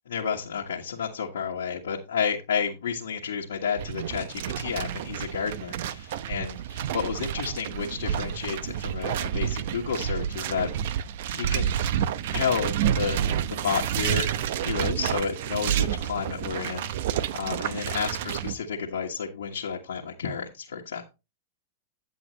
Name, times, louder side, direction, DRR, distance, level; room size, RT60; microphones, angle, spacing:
voice 1, 0.1-10.7 11.3-11.7 12.3-14.3 14.6-16.9 17.3-21.1, left 6 dB, 80° left, -1 dB, 1.4 m, -31 dB
sound 1, 3.8-18.5, right 10 dB, 65° right, 0.7 m, -29 dB
9.5 x 7.8 x 3.1 m, 0.27 s
hypercardioid pair, 115°, 0 cm